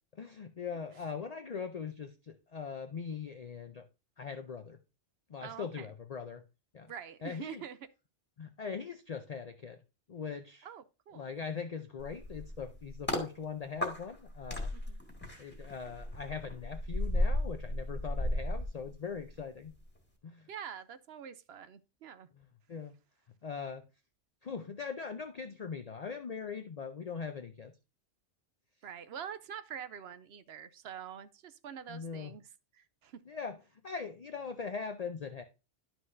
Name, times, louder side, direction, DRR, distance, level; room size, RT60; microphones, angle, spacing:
voice 1, 0.1-3.9 4.2-4.8 5.3-6.4 6.7-6.9 7.2-7.6 8.4-9.8 10.1-10.7 11.1-14.7 15.4-19.7 20.2-20.5 22.4-22.9 23.4-23.9 24.4-27.7 31.9-32.3 33.3-33.6 33.8-35.4, left 5 dB, 45° left, 0.6 m, -41 dB
voice 2, 5.4-5.9 6.8-7.8 10.6-11.3 14.7-15.0 20.5-22.3 28.8-32.4 32.7-33.2, right 8 dB, 70° right, 0.8 m, -46 dB
sound 1, 12.0-13.3 13.8-19.4 19.7-20.0, left 1 dB, 10° left, 1.8 m, -35 dB
11.0 x 6.0 x 2.6 m
omnidirectional pair, 1.2 m